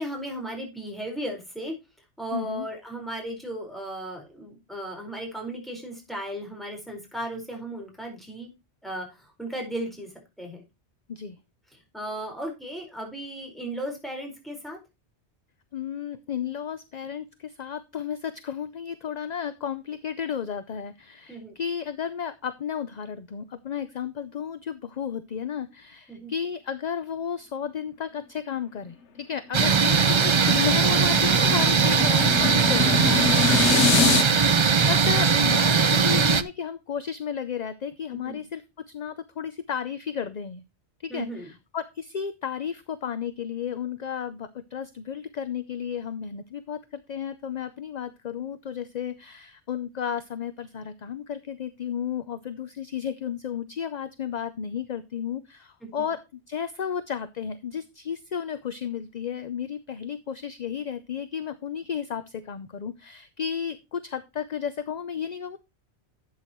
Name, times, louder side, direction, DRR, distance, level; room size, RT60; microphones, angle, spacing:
voice 1, 0.0-1.8 2.2-8.5 8.8-10.1 10.4-10.6 11.7-14.8 21.3-21.6 26.1-26.3 33.4-34.1 38.1-38.4 41.1-41.5 56.0-56.1, right 1 dB, ahead, 1 dB, 4.6 m, -36 dB
voice 2, 2.3-2.7 11.1-11.4 15.7-33.7 34.0-34.1 34.5-40.6 41.0-56.2 56.5-65.6, left 8 dB, 45° left, 12 dB, 0.6 m, -33 dB
sound 1, 29.5-36.4, right 5 dB, 40° right, 0.4 m, -20 dB
sound 2, 30.2-34.2, left 5 dB, 90° left, 1.3 m, -26 dB
12.0 x 8.3 x 3.0 m, 0.25 s
omnidirectional pair, 1.2 m